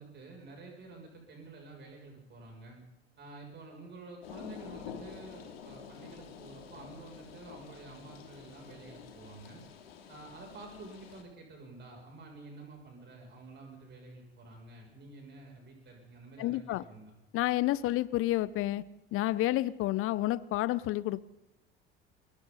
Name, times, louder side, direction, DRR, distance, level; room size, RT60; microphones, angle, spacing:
voice 1, 0.0-2.8 3.2-9.6 10.1-17.1, right 2 dB, 35° right, 1 dB, 7.5 m, -50 dB
sound 1, 4.2-11.2, left 7 dB, 70° left, 3.2 m, -48 dB
voice 2, 16.4-16.8 17.3-18.8 19.1-21.2, left 16 dB, 45° left, 19 dB, 0.9 m, -30 dB
29.0 x 22.0 x 4.2 m, 0.89 s
figure-of-eight pair, 65°, 31 cm